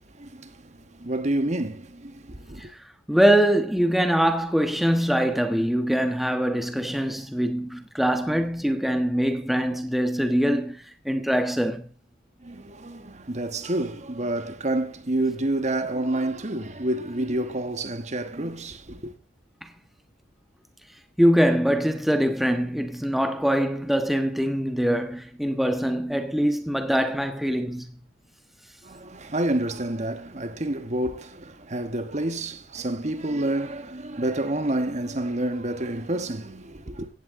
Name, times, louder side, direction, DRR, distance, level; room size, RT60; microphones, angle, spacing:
voice 1, 0.2-2.7 12.4-19.1 28.8-37.1, right 1 dB, 40° right, 1.3 m, -29 dB
voice 2, 3.1-11.9 19.6-19.7 21.2-28.0, equal, ahead, 1.3 m, -23 dB
16.5 x 16.0 x 3.8 m
head